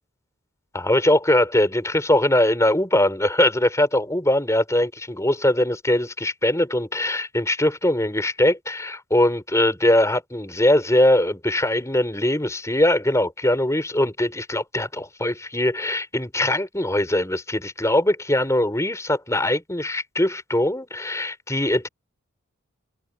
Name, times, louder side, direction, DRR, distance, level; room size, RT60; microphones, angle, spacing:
voice 1, 0.7-21.9, left 1 dB, 15° left, 4.6 m, -21 dB
head